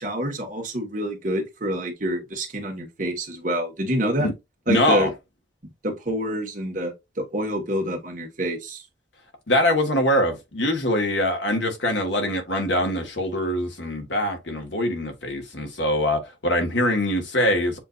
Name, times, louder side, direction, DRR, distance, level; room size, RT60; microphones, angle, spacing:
voice 1, 0.0-4.3 4.7-5.1 5.8-8.8, equal, 40° right, 1.4 m, -27 dB
voice 2, 4.7-5.1 9.5-17.8, left 1 dB, 65° left, 1.4 m, -23 dB
7.4 x 2.6 x 2.4 m
head